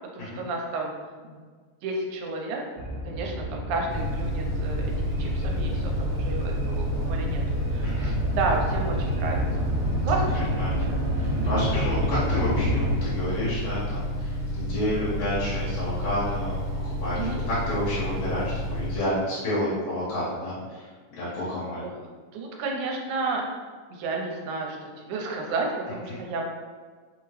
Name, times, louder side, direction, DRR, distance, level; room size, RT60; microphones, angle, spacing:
voice 1, 0.1-0.9 1.2-1.4 1.8-2.6 3.1-7.4 7.7-9.7 10.0-10.7 11.4-11.7 17.2-17.4 21.8-21.9 22.3-23.4 23.9-26.5, right 3 dB, 80° right, 0 dB, 2.1 m, -31 dB
sound 1, 2.8-13.0, equal, 65° right, 1.6 m, -29 dB
sound 2, 3.9-19.0, equal, 55° left, 1.5 m, -30 dB
voice 2, 7.8-8.1 10.3-10.7 11.1-21.9 26.1-26.2, left 1 dB, 75° left, -11 dB, 2.7 m, -30 dB
5.4 x 2.8 x 3.1 m, 1.5 s
omnidirectional pair, 3.5 m